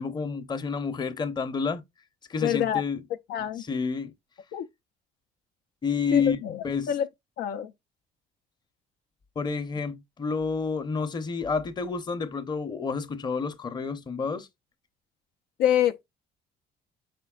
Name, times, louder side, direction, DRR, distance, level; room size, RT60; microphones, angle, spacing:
voice 1, 0.0-1.8 2.3-3.0 3.6-4.1 5.8-6.4 6.6-6.9 9.4-14.5, left 5 dB, 25° left, 0.7 m, -29 dB
voice 2, 2.4-2.8 3.3-3.6 4.5-4.6 6.1-7.1 7.4-7.7 15.6-16.0, left 10 dB, 75° left, 0.4 m, -26 dB
5.1 x 4.1 x 2.3 m
cardioid pair, 110°, 17 cm